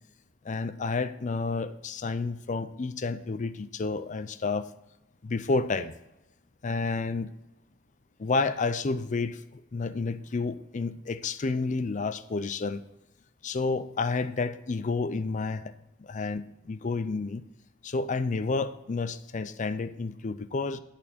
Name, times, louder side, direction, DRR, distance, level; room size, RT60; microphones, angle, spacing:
voice 1, 0.4-4.7 5.2-5.9 6.6-7.3 8.2-12.8 13.4-15.7 16.0-17.4 17.8-20.8, left 3 dB, 35° left, 13 dB, 0.5 m, -30 dB
11.0 x 4.3 x 7.3 m, 0.94 s
head